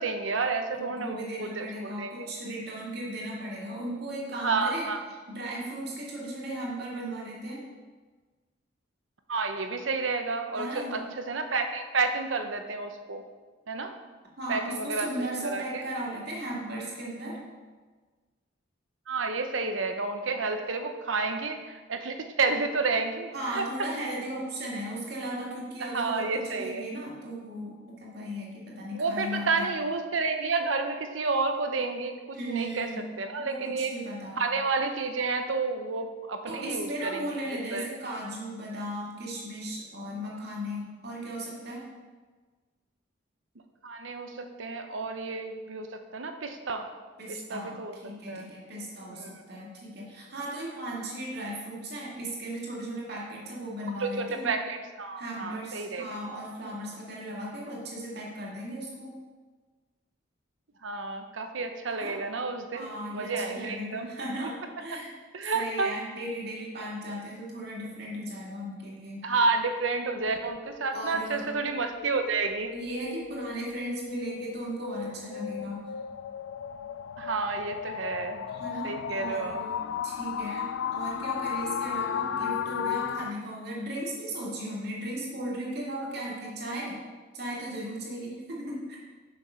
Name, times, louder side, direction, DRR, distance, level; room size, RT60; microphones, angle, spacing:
voice 1, 0.0-2.3 4.4-5.0 9.3-11.0 11.3-13.2 13.7-13.9 14.5-15.1 15.4-15.8 19.1-23.6 25.8-26.8 28.9-32.9 33.2-33.9 34.4-37.3 37.7-37.9 43.8-45.9 46.1-46.9 47.3-47.9 48.3-48.5 49.2-49.3 54.0-56.0 60.8-64.1 65.3-65.9 69.2-72.7 77.2-78.5 78.8-79.6, right 4 dB, 85° right, 6 dB, 0.8 m, -30 dB
voice 2, 0.7-4.9 5.3-7.6 10.5-11.0 14.4-17.4 23.3-29.7 32.3-33.0 33.4-34.4 36.5-41.9 47.2-54.5 55.2-59.2 61.9-62.2 62.7-64.5 64.8-65.1 65.5-69.2 70.9-71.5 72.7-75.8 78.5-87.0 87.3-89.0, right 1 dB, 55° right, -4 dB, 2.3 m, -36 dB
sound 1, 70.1-83.3, left 8 dB, 90° left, 0.3 m, -35 dB
6.9 x 6.1 x 5.7 m, 1.4 s
head